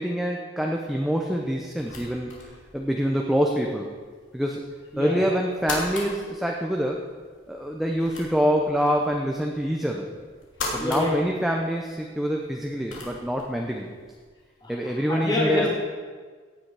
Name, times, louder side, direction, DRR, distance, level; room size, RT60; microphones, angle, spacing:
voice 1, 0.0-2.4 2.7-3.9 4.3-4.6 5.0-7.0 7.5-10.1 10.7-13.9 14.7-15.7, equal, ahead, 0 dB, 0.8 m, -25 dB
sound 1, 0.7-14.3, left 2 dB, 70° left, 3.1 m, -41 dB
voice 2, 10.7-11.1 14.6-14.7 15.1-15.7, left 2 dB, 25° left, -6 dB, 3.2 m, -26 dB
16.5 x 9.2 x 4.9 m, 1.5 s
head